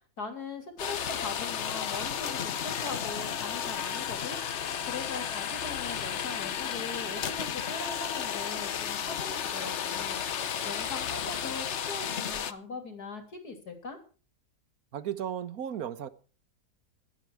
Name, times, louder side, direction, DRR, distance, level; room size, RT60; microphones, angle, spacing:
voice 1, 0.2-4.4 4.8-10.2 10.6-14.0, left 4 dB, 75° left, 3.7 m, -40 dB
sound 1, 0.8-12.5, left 8 dB, 50° left, 1.0 m, -33 dB
voice 2, 14.9-16.1, right 9 dB, 65° right, 1.5 m, -35 dB
16.5 x 12.5 x 4.7 m
omnidirectional pair, 1.7 m